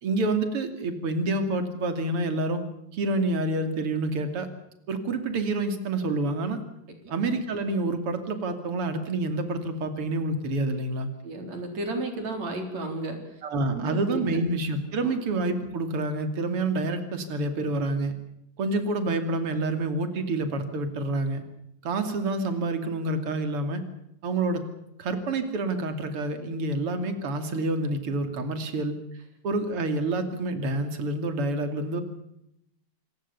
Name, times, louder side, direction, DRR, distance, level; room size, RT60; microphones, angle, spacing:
voice 1, 0.0-2.6 2.9-4.5 4.9-6.6 7.1-11.1 13.4-18.1 18.6-21.4 21.8-23.8 24.2-24.7 25.0-29.0 29.4-32.0, right 2 dB, 50° right, 8 dB, 3.4 m, -28 dB
voice 2, 11.2-13.2 13.7-14.2 15.0-15.1, right 2 dB, 65° right, 5 dB, 5.1 m, -33 dB
28.0 x 18.5 x 7.0 m, 0.80 s
omnidirectional pair, 3.4 m